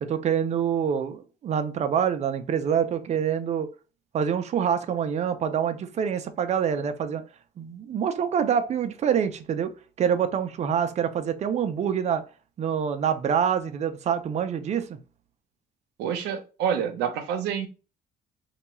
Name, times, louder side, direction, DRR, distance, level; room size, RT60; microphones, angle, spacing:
voice 1, 0.0-3.7 4.1-7.2 7.6-12.2 12.6-15.0, right 8 dB, 40° right, 9 dB, 0.5 m, -26 dB
voice 2, 16.0-17.7, right 8 dB, 85° right, 6 dB, 0.7 m, -27 dB
2.9 x 2.3 x 4.2 m, 0.33 s
cardioid pair, 110°, 17 cm